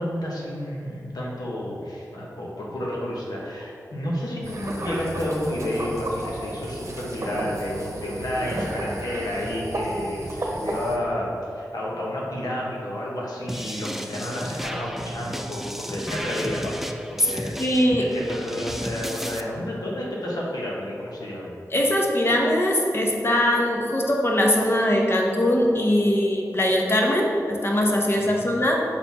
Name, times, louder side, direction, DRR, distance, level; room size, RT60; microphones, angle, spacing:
voice 1, 0.0-16.8 17.1-17.6 18.0-21.5 28.2-28.5, left 1 dB, 85° left, -4 dB, 1.3 m, -30 dB
sound 1, 4.4-11.0, right 1 dB, 45° right, 0.9 m, -32 dB
sound 2, 13.5-19.4, equal, 5° right, 0.4 m, -33 dB
voice 2, 17.6-18.1 21.7-28.8, left 1 dB, 40° left, 0 dB, 1.0 m, -21 dB
6.7 x 4.0 x 4.2 m, 2.5 s
cardioid pair, 50°, 7 cm